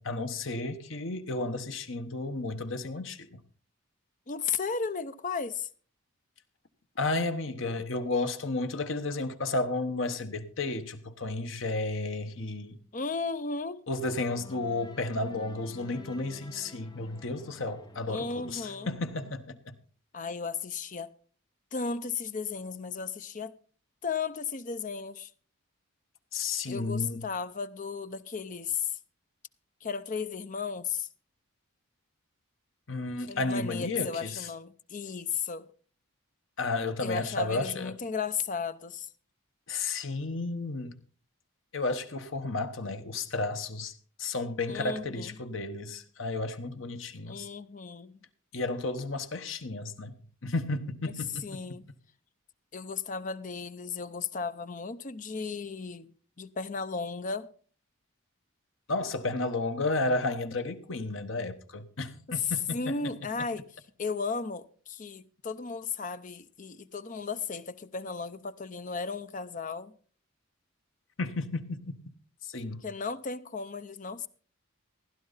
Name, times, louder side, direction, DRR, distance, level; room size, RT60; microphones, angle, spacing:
voice 1, 0.0-3.4 7.0-12.8 13.9-19.6 26.3-27.2 32.9-34.5 36.6-37.9 39.7-41.0 41.7-47.5 48.5-50.2 50.4-51.8 58.9-63.1 71.2-72.0 72.4-72.8, left 2 dB, 65° left, 1.2 m, -32 dB
voice 2, 4.3-5.7 12.9-13.8 18.1-18.9 20.1-21.1 21.7-23.5 24.0-25.3 26.7-29.0 29.8-31.1 33.2-35.7 37.0-39.1 44.7-45.4 47.3-48.2 51.4-51.8 52.7-56.1 56.4-57.5 62.3-63.7 64.0-69.9 72.8-74.3, left 5 dB, 40° left, 0.6 m, -35 dB
sound 1, 14.0-19.3, left 1 dB, 20° left, 1.0 m, -50 dB
16.0 x 11.5 x 4.0 m
head